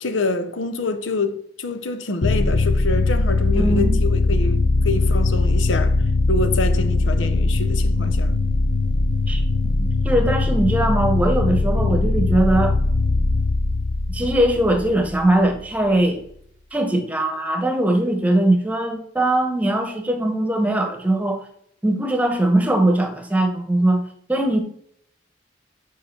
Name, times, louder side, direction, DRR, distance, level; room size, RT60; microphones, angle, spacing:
voice 1, 0.0-6.0 6.3-8.3, left 3 dB, 90° left, 0.8 m, -26 dB
sound 1, 2.2-15.6, left 2 dB, 50° left, 0.4 m, -20 dB
voice 2, 3.5-4.0 9.3-12.8 14.1-16.2 16.7-21.4 21.8-24.0 24.3-24.6, right 1 dB, 10° right, 1.0 m, -20 dB
5.6 x 4.9 x 5.9 m
head